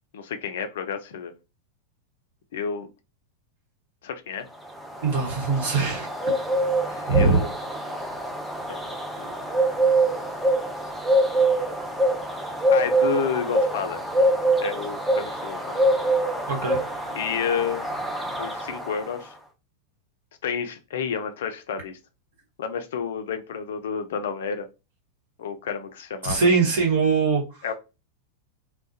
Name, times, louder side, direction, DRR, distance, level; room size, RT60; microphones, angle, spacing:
voice 1, 0.1-1.3 2.5-2.9 4.0-4.5 6.9-7.5 8.7-8.9 9.2-9.3 12.7-14.0 14.6-15.8 17.1-17.9 18.4-19.3 20.4-22.0 22.6-24.7 25.4-26.5 27.6-27.7, left 6 dB, 60° left, 8 dB, 0.4 m, -30 dB
sound 1, 4.6-19.2, right 1 dB, 5° right, 0.5 m, -25 dB
voice 2, 5.0-6.4 7.1-7.4 16.5-17.1 26.2-27.4, right 4 dB, 55° right, 0 dB, 1.0 m, -22 dB
2.3 x 2.0 x 2.6 m, 0.27 s
figure-of-eight pair, 90°, 0 cm